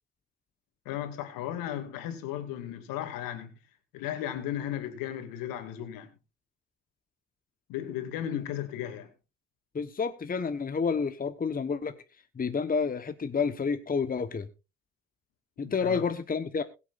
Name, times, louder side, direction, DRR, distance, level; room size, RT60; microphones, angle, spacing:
voice 1, 0.9-3.5 3.9-6.1 7.7-9.1 15.6-16.0, left 11 dB, 65° left, 2.5 m, -35 dB
voice 2, 9.7-11.9 12.3-14.5 15.6-16.6, left 5 dB, 25° left, 1.2 m, -29 dB
21.0 x 8.6 x 2.5 m
hypercardioid pair, 55°, 37 cm